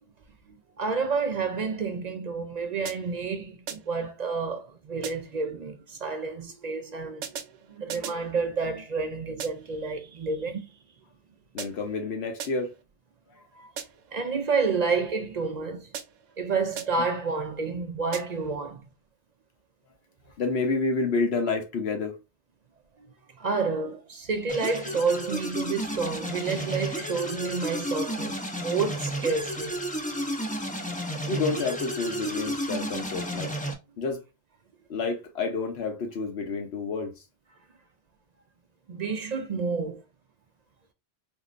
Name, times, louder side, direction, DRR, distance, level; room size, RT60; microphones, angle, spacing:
voice 1, 0.8-7.2 7.7-10.7 13.6-13.7 14.1-15.9 16.4-18.8 23.4-29.8 38.9-40.0, right 4 dB, 55° right, 0.5 m, -29 dB
sound 1, 2.9-3.3 3.7-4.1 5.0-5.5 7.2-8.3 9.4-9.8 11.6-12.0 12.4-12.8 13.8-14.2 15.9-16.4 16.8-17.2 18.1-18.6, right 8 dB, 90° right, 0.9 m, -40 dB
voice 2, 11.5-12.7 14.7-14.8 20.4-22.2 31.3-33.5 34.0-34.2 34.9-37.1, left 4 dB, 70° left, 1.1 m, -29 dB
sound 2, 24.5-33.7, equal, 10° left, 0.5 m, -32 dB
3.7 x 3.1 x 2.5 m
omnidirectional pair, 1.1 m